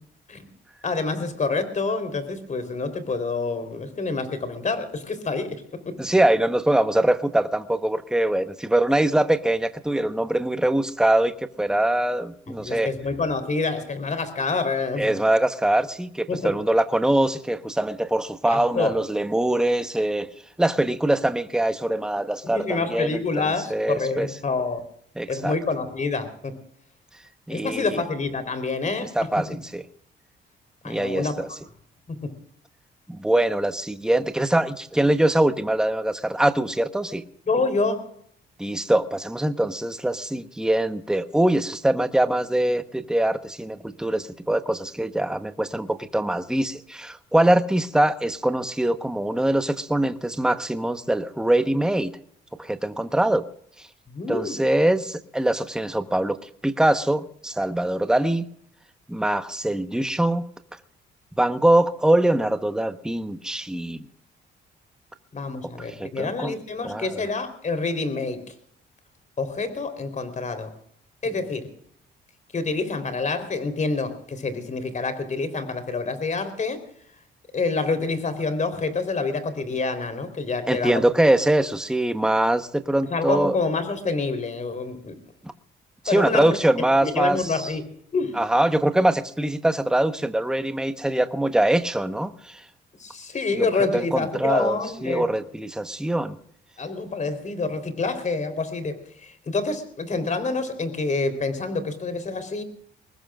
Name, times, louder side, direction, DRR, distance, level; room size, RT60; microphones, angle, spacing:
voice 1, 0.8-6.0 12.5-15.1 16.3-16.5 18.4-18.9 22.4-24.8 25.3-26.6 27.5-29.1 30.8-31.3 32.1-32.4 37.5-38.1 54.1-54.6 65.3-68.5 69.4-70.7 71.2-71.7 72.5-76.8 77.5-81.0 83.1-85.2 86.1-86.4 87.0-87.8 88.1-88.4 93.0-95.3 96.8-102.6, left 3 dB, 40° left, 9 dB, 3.8 m, -27 dB
voice 2, 6.0-12.9 15.0-20.3 20.6-24.3 25.2-25.6 27.5-28.0 29.1-29.8 30.8-31.5 33.1-37.2 38.6-52.1 52.6-53.4 53.8-53.9 54.3-58.4 59.1-60.4 61.4-64.1 65.9-66.6 66.8-67.2 80.7-83.6 85.4-85.5 86.0-87.7 88.3-92.6 93.5-93.7 93.9-96.4, right 1 dB, 5° right, 9 dB, 1.1 m, -23 dB
24.0 x 20.0 x 2.5 m, 0.63 s
cardioid pair, 90°, 20 cm